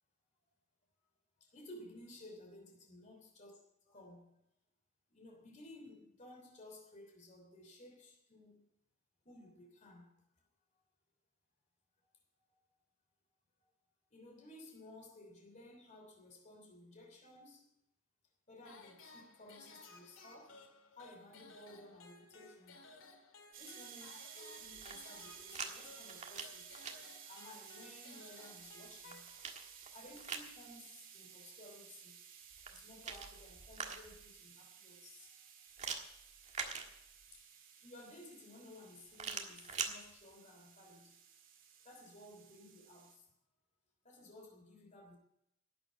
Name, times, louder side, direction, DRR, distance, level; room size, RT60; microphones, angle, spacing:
voice 1, 1.4-4.4 5.1-8.6 9.2-10.2 10.7-10.8 14.1-17.7 18.5-22.8 23.6-26.7 27.2-29.3 29.9-32.1 32.7-35.4 37.3-41.2 41.8-43.3 44.0-45.2, left 1 dB, 35° left, 3.2 m, -56 dB
sound 1, 18.6-29.8, left 3 dB, 85° left, 2.0 m, -58 dB
sound 2, 23.5-43.2, right 8 dB, 70° right, 2.8 m, -56 dB
sound 3, 24.6-25.7 26.0-26.9 28.7-30.5 32.5-34.3 35.8-37.4 39.1-39.9, right 5 dB, 35° right, 1.5 m, -44 dB
12.0 x 9.1 x 8.5 m
head